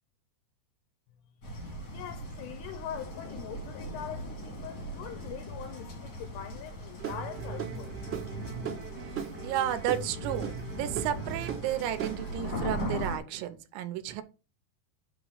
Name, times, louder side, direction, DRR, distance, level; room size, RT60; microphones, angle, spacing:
sound 1, 1.4-13.2, equal, 55° left, 1.1 m, -39 dB
voice 1, 1.9-7.9, left 9 dB, 80° left, 2.4 m, -42 dB
Guitar / Drum, 7.0-12.6, right 7 dB, 60° right, 0.8 m, -38 dB
voice 2, 9.4-14.2, right 11 dB, 90° right, 3.0 m, -32 dB
8.9 x 3.0 x 6.4 m
omnidirectional pair, 5.2 m